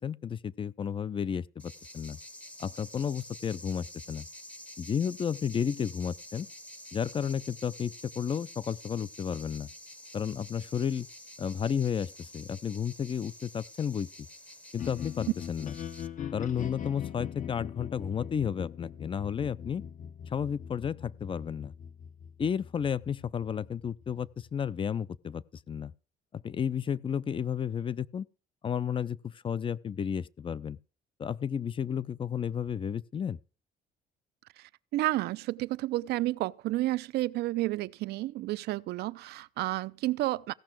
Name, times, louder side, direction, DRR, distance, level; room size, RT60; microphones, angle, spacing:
voice 1, 0.0-2.2 2.6-4.3 4.8-6.5 6.9-9.7 10.1-11.1 11.4-14.1 14.7-15.8 16.3-19.8 20.3-21.7 22.4-25.9 26.3-28.3 28.6-30.8 31.2-33.4, left 7 dB, 30° left, 0.5 m, -32 dB
sound 1, 1.6-16.1, left 1 dB, 5° left, 0.8 m, -48 dB
sound 2, 14.8-24.9, left 9 dB, 50° left, 0.9 m, -42 dB
voice 2, 34.6-40.5, right 17 dB, 75° right, 0.5 m, -31 dB
16.0 x 5.9 x 7.5 m
cardioid pair, 110°, 17 cm